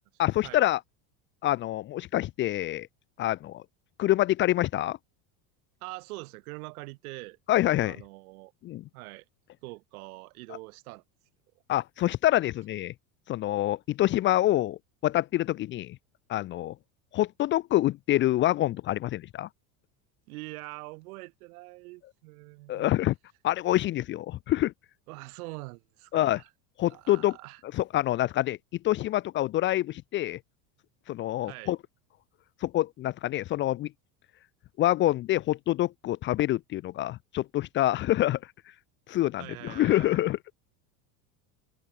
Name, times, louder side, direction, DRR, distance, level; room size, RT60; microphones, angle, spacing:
voice 1, 0.2-0.8 1.4-2.9 3.2-3.6 4.0-5.0 7.5-8.0 8.6-8.8 11.7-12.9 13.3-16.0 16.3-16.7 17.1-19.5 22.7-23.1 23.4-24.7 26.1-26.4 26.8-27.4 27.7-28.6 28.8-30.4 31.1-31.8 32.6-33.9 34.8-38.4 39.1-40.4, left 14 dB, 25° left, 0.6 m, -26 dB
voice 2, 5.8-7.4 7.8-8.5 8.9-9.2 9.6-11.0 20.3-22.9 25.1-26.5 26.9-27.6 31.4-31.7 39.4-40.2, right 23 dB, 80° right, 7.8 m, -43 dB
cardioid pair, 170°, 43 cm